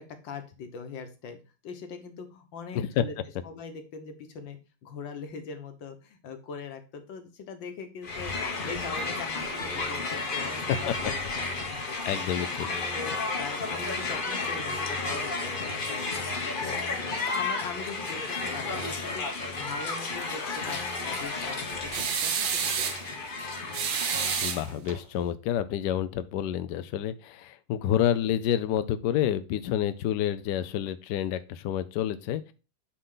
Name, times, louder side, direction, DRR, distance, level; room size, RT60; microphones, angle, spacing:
voice 1, 0.0-1.4 1.6-3.2 3.4-12.2 12.9-19.3 19.5-23.2, left 5 dB, 65° left, 7 dB, 1.7 m, -42 dB
Crowd, 8.0-24.7, left 3 dB, 35° left, 0.8 m, -32 dB
voice 2, 11.5-12.7 24.4-32.5, left 10 dB, 80° left, 12 dB, 0.9 m, -29 dB
sound 1, 21.9-23.0 23.7-25.0, right 7 dB, 65° right, 1.3 m, -29 dB
8.7 x 3.9 x 3.8 m, 0.32 s
omnidirectional pair, 2.4 m